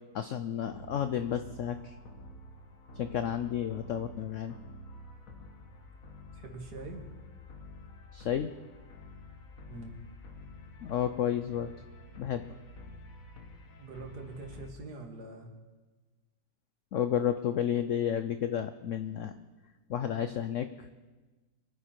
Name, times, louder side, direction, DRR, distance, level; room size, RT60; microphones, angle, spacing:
voice 1, 0.1-2.0 3.0-4.5 8.1-8.5 10.8-11.7 12.2-12.4 16.9-19.3 19.9-20.9, left 9 dB, 70° left, 10 dB, 0.7 m, -31 dB
sound 1, 0.6-14.7, left 1 dB, 50° left, 1.6 m, -49 dB
voice 2, 6.3-7.0 9.7-9.9 13.8-15.5, right 3 dB, 60° right, 3 dB, 2.2 m, -44 dB
24.0 x 9.5 x 4.5 m, 1.2 s
omnidirectional pair, 1.9 m